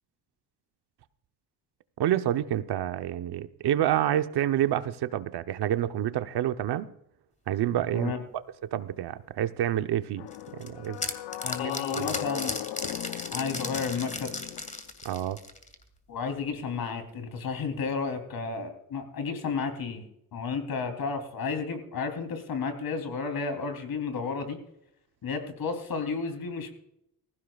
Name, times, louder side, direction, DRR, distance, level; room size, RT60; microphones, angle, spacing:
voice 1, 2.0-6.9 7.5-8.1 8.7-11.0 11.9-12.2 15.0-15.4, right 11 dB, 70° right, 0.9 m, -28 dB
sound 1, 10.2-14.9, left 14 dB, 80° left, 0.6 m, -37 dB
sound 2, 10.3-15.8, left 2 dB, 15° left, 2.5 m, -36 dB
voice 2, 11.4-12.5 13.3-14.3 16.1-24.6 25.2-26.7, left 5 dB, 60° left, 3.3 m, -32 dB
19.5 x 15.5 x 2.4 m
cardioid pair, 85°, 41 cm